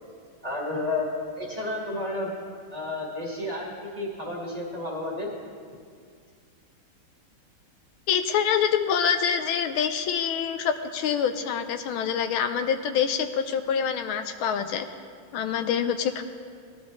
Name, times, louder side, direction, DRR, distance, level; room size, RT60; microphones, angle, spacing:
voice 1, 0.4-2.3 2.7-5.3, left 2 dB, 20° right, -4 dB, 1.8 m, -31 dB
voice 2, 8.1-14.9 15.3-16.2, left 7 dB, 80° left, 8 dB, 1.4 m, -26 dB
18.5 x 12.0 x 3.1 m, 2.1 s
omnidirectional pair, 2.3 m